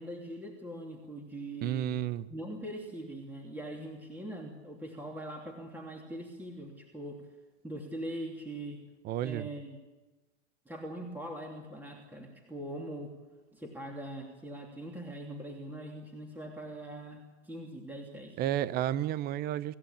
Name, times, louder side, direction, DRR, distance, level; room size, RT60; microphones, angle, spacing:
voice 1, 0.0-1.9 2.3-7.3 7.6-8.8 9.2-9.8 10.6-13.1 13.5-18.4, right 1 dB, 5° right, 1 dB, 2.9 m, -42 dB
voice 2, 1.6-2.3 9.0-9.5 18.4-19.7, right 12 dB, 25° right, 17 dB, 0.8 m, -31 dB
26.5 x 15.0 x 8.7 m, 1.1 s
hypercardioid pair, 115°, 37 cm